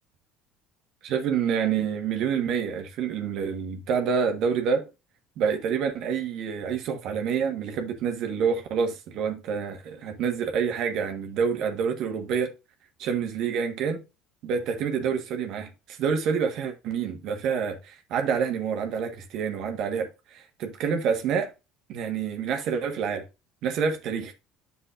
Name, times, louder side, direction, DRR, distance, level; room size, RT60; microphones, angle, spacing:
voice 1, 1.0-4.8 5.4-12.5 13.0-14.0 14.4-21.5 21.9-23.2 23.6-24.3, right 6 dB, 60° right, 1.4 m, -27 dB
10.0 x 6.7 x 2.5 m
hypercardioid pair, 65°, 0 cm